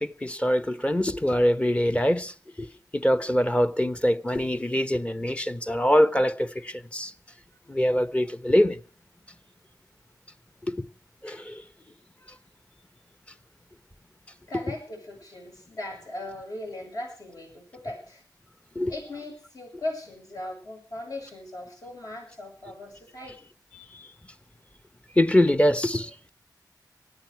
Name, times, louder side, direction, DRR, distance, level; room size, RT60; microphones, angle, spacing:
voice 1, 0.0-2.3 2.6-2.7 2.9-7.1 7.7-8.8 10.7-10.9 11.2-11.6 18.7-18.9 25.2-26.1, equal, 15° left, 1.1 m, -23 dB
voice 2, 14.5-18.2 18.9-23.5, left 1 dB, 55° left, 7.6 m, -38 dB
20.0 x 14.5 x 4.7 m
wide cardioid pair, 70°, 7 cm